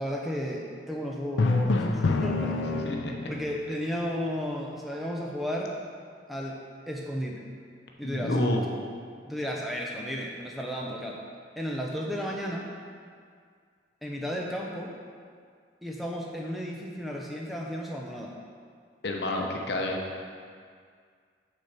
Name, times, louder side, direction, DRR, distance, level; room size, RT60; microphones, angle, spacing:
voice 1, 0.0-2.9 3.3-5.7 6.3-6.6 6.9-7.4 8.0-8.3 9.3-11.2 11.6-12.7 14.0-14.9 15.8-18.3, equal, ahead, -2 dB, 0.5 m, -33 dB
Drum, 1.4-3.4, left 3 dB, 90° left, 0.5 m, -26 dB
voice 2, 8.0-8.6 19.0-20.0, left 1 dB, 65° left, 0 dB, 0.9 m, -28 dB
6.4 x 4.2 x 6.5 m, 2.1 s
head